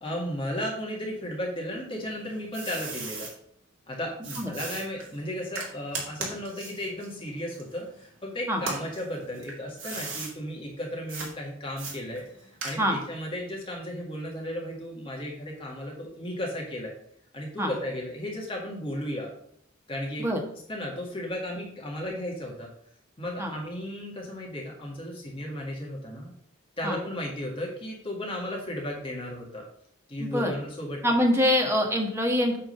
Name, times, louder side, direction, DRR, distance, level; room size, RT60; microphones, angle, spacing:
voice 1, 0.0-3.3 3.9-16.9 17.3-19.3 19.9-20.3 20.7-22.7 23.2-26.3 26.8-29.6 30.1-31.2, equal, 25° left, -2 dB, 1.8 m, -35 dB
sound 1, 1.9-3.3 4.2-8.1 8.5-10.3 11.1-11.3 11.8-13.1, right 3 dB, 75° right, 2.5 m, -37 dB
voice 2, 30.2-30.5 31.0-32.6, equal, 15° right, 2 dB, 1.3 m, -24 dB
8.5 x 3.8 x 6.5 m, 0.66 s
head